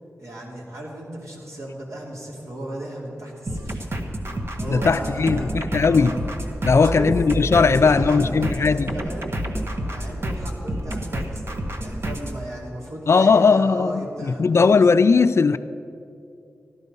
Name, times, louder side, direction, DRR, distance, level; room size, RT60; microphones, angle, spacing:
voice 1, 0.2-3.8 4.6-6.1 6.7-7.1 7.5-9.4 9.9-11.4 11.8-14.8, right 1 dB, 65° right, 3.3 m, -35 dB
sound 1, 3.5-12.4, right 1 dB, 50° right, 1.3 m, -29 dB
voice 2, 4.6-6.2 6.6-8.9 13.1-15.6, left 4 dB, 55° left, 0.4 m, -18 dB
14.5 x 11.5 x 5.4 m
cardioid pair, 65°, 5 cm